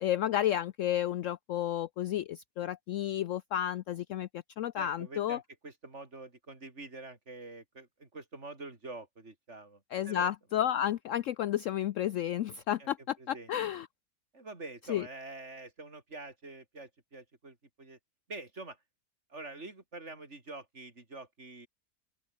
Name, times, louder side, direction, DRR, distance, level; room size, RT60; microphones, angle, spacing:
voice 1, 0.0-5.4 9.9-13.9 14.9-15.1, left 11 dB, 65° left, 0.9 m, -32 dB
voice 2, 4.8-10.3 12.8-12.9 13.2-13.5 14.3-18.0 18.3-18.8 19.3-21.7, right 2 dB, 50° right, 3.8 m, -46 dB
open air
omnidirectional pair, 1.6 m